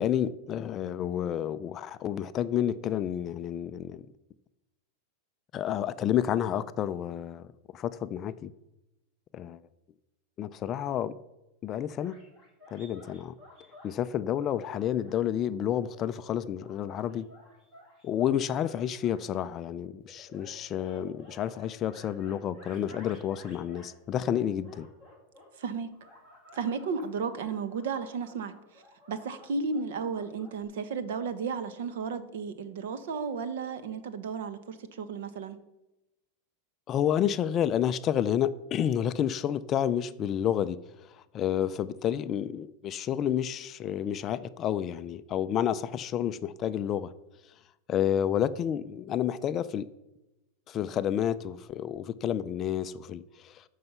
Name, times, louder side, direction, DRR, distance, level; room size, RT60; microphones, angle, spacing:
voice 1, 0.0-4.1 5.5-7.4 7.7-8.5 9.3-9.6 10.4-11.2 11.6-12.2 12.7-13.3 13.8-17.3 18.0-24.9 36.9-40.8 41.3-47.1 47.9-49.9 50.7-53.6, left 10 dB, 20° left, 0.3 m, -30 dB
sound 1, 12.0-13.9 14.3-15.2 15.7-19.3 20.1-24.0 24.3-25.5 25.9-30.6, left 1 dB, 15° right, 2.1 m, -54 dB
voice 2, 25.6-25.9 26.5-28.8 29.1-35.6, right 5 dB, 65° right, 1.0 m, -34 dB
14.0 x 5.5 x 5.5 m
supercardioid pair, 175°, 0 cm